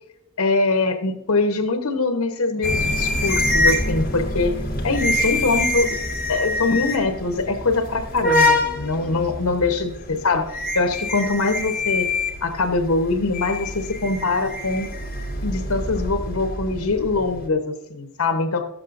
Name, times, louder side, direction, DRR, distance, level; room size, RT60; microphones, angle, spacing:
voice 1, 0.4-4.6 4.8-6.0 6.3-12.1 12.4-14.9 15.4-18.7, left 3 dB, 80° left, 7 dB, 1.0 m, -23 dB
sound 1, 2.6-17.5, left 2 dB, 40° left, 1.7 m, -25 dB
13.5 x 7.5 x 2.6 m, 0.83 s
head